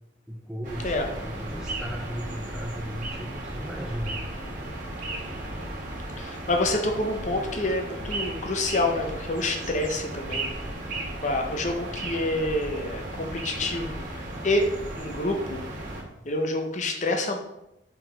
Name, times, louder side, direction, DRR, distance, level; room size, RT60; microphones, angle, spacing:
voice 1, 0.3-4.2, equal, 5° right, 0 dB, 0.4 m, -36 dB
sound 1, 0.6-16.0, right 1 dB, 40° right, 1.5 m, -35 dB
voice 2, 6.2-10.5 11.2-15.6 16.2-17.4, left 2 dB, 40° left, 3 dB, 0.8 m, -27 dB
4.9 x 3.9 x 5.0 m, 0.87 s
head